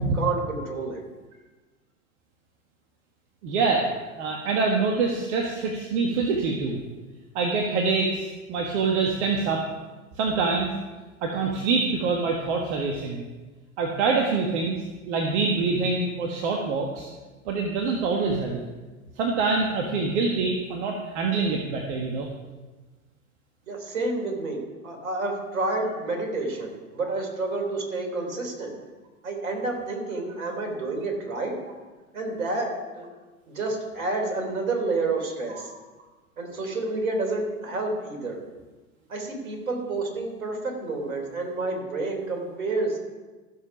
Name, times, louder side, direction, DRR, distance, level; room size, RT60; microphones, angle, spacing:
voice 1, 0.1-1.0 23.7-28.7 29.2-31.5 32.1-33.1 33.5-35.7 36.4-38.4 39.1-43.0, right 3 dB, 75° right, 2 dB, 3.4 m, -29 dB
voice 2, 3.4-3.9 4.1-6.8 7.3-9.6 10.1-10.7 11.2-13.2 13.8-14.8 15.0-17.1 17.4-18.6 19.2-22.3 35.5-35.7, right 4 dB, 55° right, 1 dB, 1.7 m, -25 dB
14.5 x 7.0 x 6.0 m, 1.3 s
figure-of-eight pair, 90°, 42 cm